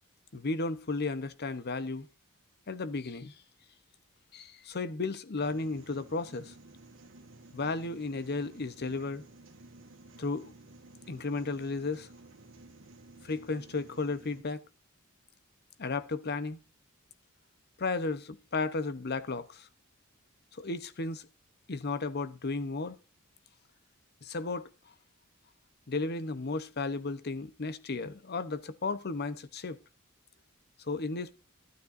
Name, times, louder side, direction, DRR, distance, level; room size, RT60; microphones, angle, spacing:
voice 1, 0.3-2.1 2.7-3.3 4.3-6.5 7.5-9.2 10.2-10.5 11.1-12.1 13.2-14.6 15.8-16.6 17.8-19.7 20.6-21.2 21.7-23.0 24.2-24.7 25.9-29.8 30.8-31.3, left 3 dB, 50° left, 0.8 m, -34 dB
sound 1, 5.4-14.4, right 2 dB, 60° right, 1.8 m, -54 dB
13.0 x 12.5 x 2.6 m
head